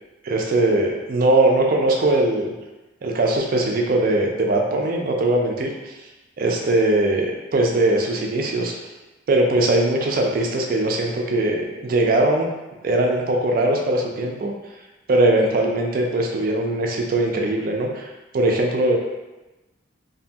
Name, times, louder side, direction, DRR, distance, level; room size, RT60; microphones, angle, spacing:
voice 1, 0.2-2.5 3.0-5.9 6.4-8.7 9.3-12.5 12.8-14.5 15.1-18.9, right 2 dB, 45° right, 1 dB, 0.4 m, -20 dB
2.7 x 2.2 x 2.7 m, 1.1 s
head